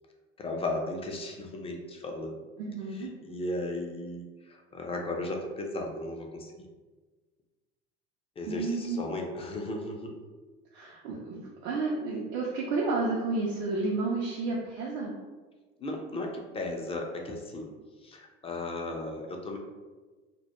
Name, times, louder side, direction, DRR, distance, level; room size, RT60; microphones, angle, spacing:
voice 1, 0.4-2.4 3.0-6.7 8.4-10.2 15.8-17.7 18.0-19.6, left 2 dB, 20° left, 1 dB, 0.3 m, -35 dB
voice 2, 2.6-3.1 8.4-9.0 10.7-15.1, right 3 dB, 70° right, -4 dB, 0.5 m, -31 dB
2.2 x 2.0 x 2.9 m, 1.3 s
hypercardioid pair, 70°, 31 cm